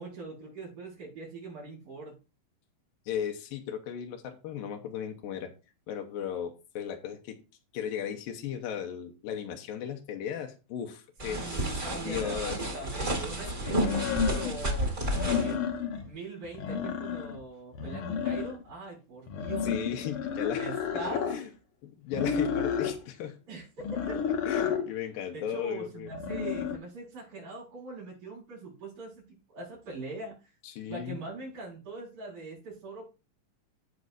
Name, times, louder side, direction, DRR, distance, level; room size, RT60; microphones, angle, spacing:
voice 1, 0.0-2.2 11.2-15.6 16.0-19.7 20.6-21.3 23.5-24.2 25.3-30.5 30.9-33.1, right 3 dB, 75° right, -9 dB, 6.3 m, -42 dB
voice 2, 3.1-5.5 5.9-7.4 7.7-11.6 11.9-12.6 13.6-14.1 19.3-20.7 21.3-21.5 21.8-23.4 24.4-26.1 30.6-31.2, left 9 dB, 90° left, 4 dB, 2.7 m, -36 dB
sound 1, 11.2-15.5, right 1 dB, 25° right, 2.1 m, -31 dB
sound 2, 12.3-12.4 13.7-14.6 15.0-16.1 16.4-17.4 17.7-18.7 19.3-21.4 22.1-23.0 23.8-24.9 26.1-26.8, left 7 dB, 60° left, 1.4 m, -31 dB
16.0 x 5.4 x 2.6 m, 0.32 s
omnidirectional pair, 3.9 m